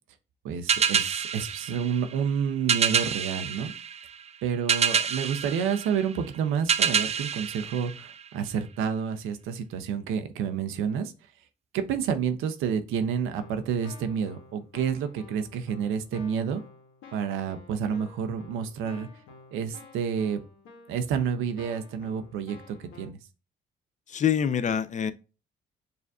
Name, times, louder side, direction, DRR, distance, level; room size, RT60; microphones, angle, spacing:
voice 1, 0.4-3.7 4.4-11.1 11.7-16.6 17.1-19.1 19.5-20.4 20.9-23.2, right 7 dB, 90° right, 0.5 m, -29 dB
sound 1, 0.7-8.6, right 7 dB, 35° right, 0.4 m, -28 dB
Keyboard (musical), 12.9-13.0 13.4-23.1, left 4 dB, 85° left, 1.1 m, -51 dB
voice 2, 24.1-25.1, left 8 dB, 40° left, 0.4 m, -25 dB
6.7 x 2.5 x 2.3 m
cardioid pair, 90°, 20 cm